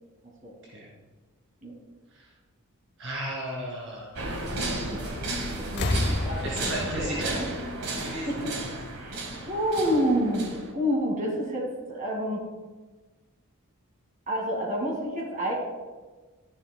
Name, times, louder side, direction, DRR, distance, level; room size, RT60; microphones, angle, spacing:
voice 1, 3.0-4.1 6.2-7.4 8.0-8.3, right 1 dB, 55° right, -5 dB, 2.4 m, -34 dB
sound 1, 4.2-10.7, right 2 dB, 75° right, 1.6 m, -34 dB
sound 2, 5.0-5.3 5.7-8.4 9.5-9.6, left 2 dB, 45° left, 0.7 m, -31 dB
voice 2, 5.6-6.7 7.0-7.5 8.3-8.6 8.9-12.5 14.3-15.5, equal, 35° right, -1 dB, 2.0 m, -29 dB
13.0 x 10.5 x 2.2 m, 1.3 s
head